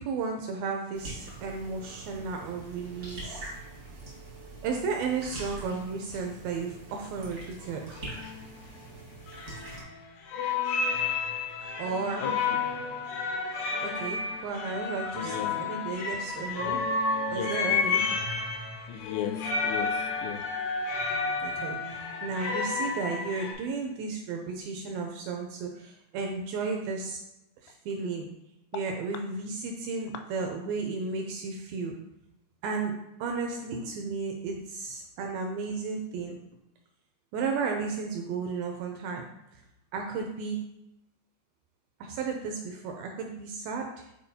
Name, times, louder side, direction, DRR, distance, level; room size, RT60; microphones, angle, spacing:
voice 1, 0.0-3.5 4.6-8.1 11.8-12.3 13.8-16.8 17.3-18.0 21.4-21.8 22.2-27.2 27.6-28.3 28.7-32.0 32.6-32.9 33.2-36.4 37.3-39.6 39.9-40.6 42.0-44.1, right 4 dB, 85° right, 2 dB, 2.1 m, -33 dB
sound 1, 0.9-9.8, right 2 dB, 70° right, 0.8 m, -44 dB
sound 2, 7.6-7.7 8.0-8.4 9.3-10.0 10.3-23.5, left 4 dB, 70° left, 2.3 m, -31 dB
voice 2, 15.1-15.5 17.3-18.1 18.9-19.4 19.6-20.4, left 9 dB, 85° left, 6 dB, 2.8 m, -36 dB
10.0 x 4.4 x 2.7 m, 0.86 s
omnidirectional pair, 4.9 m